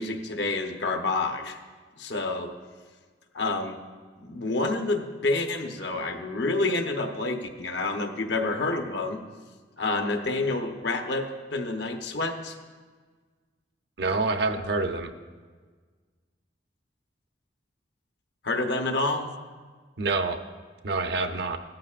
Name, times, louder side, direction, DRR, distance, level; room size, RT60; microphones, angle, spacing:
voice 1, 0.0-1.6 2.0-2.5 3.3-3.8 4.2-9.2 9.8-12.5 18.4-19.3, left 2 dB, 65° left, 4 dB, 1.0 m, -28 dB
voice 2, 14.0-15.1 20.0-20.4 20.8-21.6, right 3 dB, 60° right, 7 dB, 0.7 m, -27 dB
16.0 x 13.0 x 2.5 m, 1.5 s
head